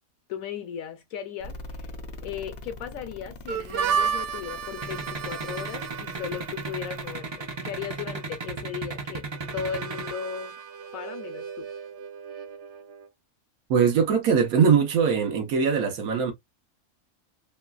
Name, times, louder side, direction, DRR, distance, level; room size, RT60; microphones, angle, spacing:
voice 1, 0.3-1.9 2.2-7.3 7.6-9.2 9.5-10.5 10.9-11.7, left 8 dB, 75° left, 1.0 m, -36 dB
sound 1, 1.4-7.2, left 3 dB, 60° left, 0.6 m, -42 dB
Harmonica, 3.5-13.1, right 7 dB, 65° right, 0.8 m, -34 dB
sound 2, 4.8-10.1, right 4 dB, 40° right, 0.4 m, -34 dB
voice 2, 13.7-16.3, right 6 dB, 80° right, 1.2 m, -21 dB
3.1 x 2.2 x 2.3 m
omnidirectional pair, 1.5 m